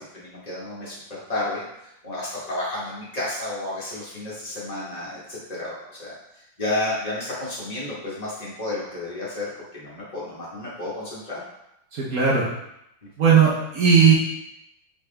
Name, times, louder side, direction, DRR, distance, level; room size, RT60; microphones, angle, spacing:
voice 1, 0.0-6.1 6.6-11.4, left 2 dB, 25° left, -7 dB, 1.4 m, -31 dB
voice 2, 11.9-12.4 13.2-14.1, right 6 dB, 60° right, -5 dB, 1.2 m, -17 dB
3.9 x 3.6 x 3.3 m, 0.82 s
omnidirectional pair, 2.0 m